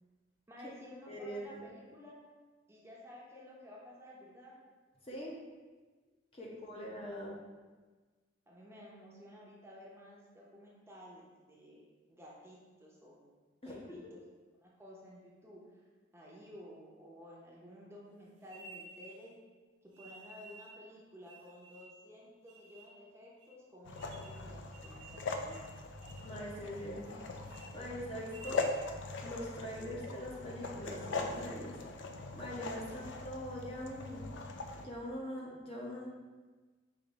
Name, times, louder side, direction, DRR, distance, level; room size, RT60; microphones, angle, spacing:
voice 1, 0.5-2.2 2.7-4.6 6.4-7.1 8.5-13.3 13.6-14.2 14.6-15.6 16.1-19.3 19.8-25.7, left 1 dB, 15° right, -5 dB, 0.7 m, -54 dB
voice 2, 1.1-1.6 5.0-5.3 6.3-7.4 13.6-13.7 26.2-27.2 27.7-28.6 29.2-31.8 32.3-34.2 34.8-36.1, equal, 30° left, -4 dB, 0.8 m, -42 dB
sound 1, 18.5-19.3 19.9-20.8 21.2-22.0 22.5-23.0 23.4-23.5 24.0-24.4 24.7-25.2 25.5-25.7 26.0-26.3 26.7-27.1 27.4-27.7 28.2-28.8, right 2 dB, 65° right, 0.7 m, -53 dB
sound 2, 23.8-34.9, left 3 dB, 70° left, 0.4 m, -41 dB
5.1 x 2.6 x 4.0 m, 1.3 s
head